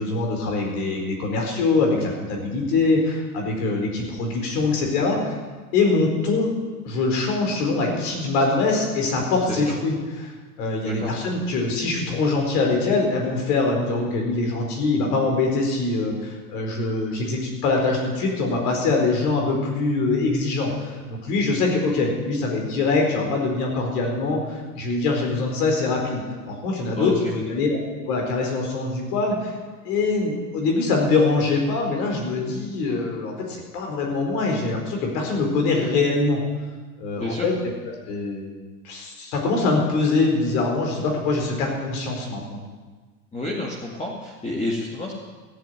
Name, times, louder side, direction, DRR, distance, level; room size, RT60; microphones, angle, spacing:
voice 1, 0.0-5.4 5.7-6.5 6.8-10.3 10.6-26.2 26.5-27.8 28.1-29.5 29.8-36.4 37.0-37.7 38.1-38.5 38.8-42.6, left 3 dB, 70° left, 1 dB, 4.6 m, -23 dB
voice 2, 10.8-11.1 27.0-27.3 37.1-37.5 43.3-45.1, left 2 dB, 15° left, -3 dB, 2.3 m, -29 dB
15.0 x 7.5 x 9.2 m, 1.4 s
hypercardioid pair, 105°, 47 cm